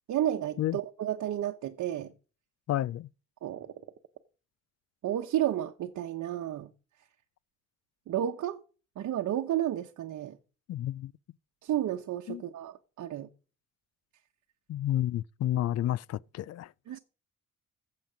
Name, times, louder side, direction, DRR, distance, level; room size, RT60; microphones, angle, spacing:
voice 1, 0.1-2.1 3.4-3.7 5.0-6.7 8.1-8.6 9.0-10.4 11.6-13.3 16.9-17.0, right 12 dB, 70° right, 1.0 m, -32 dB
voice 2, 2.7-3.1 10.7-11.1 12.3-12.4 14.7-16.7, left 13 dB, 60° left, 0.5 m, -30 dB
15.0 x 7.7 x 5.1 m
cardioid pair, 90°, 30 cm